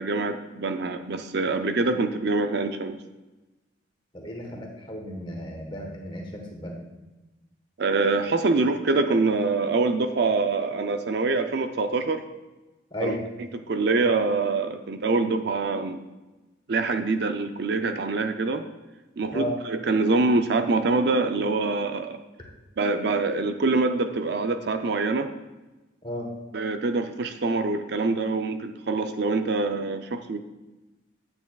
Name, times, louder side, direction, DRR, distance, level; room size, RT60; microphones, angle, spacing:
voice 1, 0.0-3.0 7.8-12.2 13.0-13.1 13.5-16.0 16.7-18.6 19.2-22.2 22.8-25.3 26.5-30.4, right 3 dB, 55° right, 8 dB, 0.4 m, -25 dB
voice 2, 4.1-6.8 12.9-13.2 19.3-19.5 26.0-26.3, left 1 dB, 25° left, 1 dB, 1.3 m, -34 dB
9.1 x 8.2 x 2.3 m, 1.1 s
head